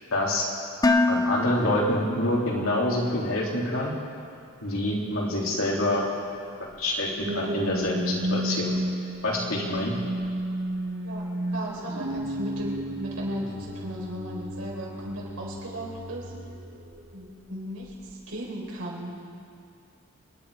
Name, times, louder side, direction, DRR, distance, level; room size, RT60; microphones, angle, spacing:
voice 1, 0.1-0.5 1.1-3.9 4.6-6.0 6.8-8.8 9.2-9.9, left 1 dB, 80° left, -3 dB, 3.3 m, -26 dB
Dishes pots and pans, 0.8-2.9, left 2 dB, 15° left, 0.5 m, -26 dB
sound 1, 6.7-17.3 17.8-18.1, right 1 dB, 60° right, 1.5 m, -33 dB
voice 2, 11.5-16.3 17.1-19.2, equal, 85° right, -3 dB, 4.5 m, -36 dB
27.5 x 10.5 x 4.9 m, 2.4 s
head